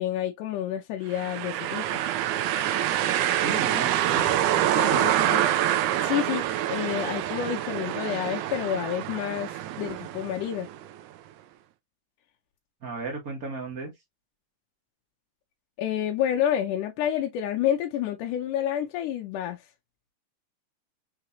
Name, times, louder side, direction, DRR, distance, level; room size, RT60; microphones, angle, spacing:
voice 1, 0.0-2.0 5.3-5.4 6.0-6.4 6.7-10.7 15.8-19.6, left 10 dB, 80° left, 2.1 m, -29 dB
sound 1, 1.1-10.9, right 12 dB, 80° right, 1.9 m, -26 dB
voice 2, 3.4-4.5 4.7-5.1 12.8-13.9, right 3 dB, 40° right, 1.3 m, -33 dB
5.8 x 3.1 x 2.6 m
omnidirectional pair, 3.8 m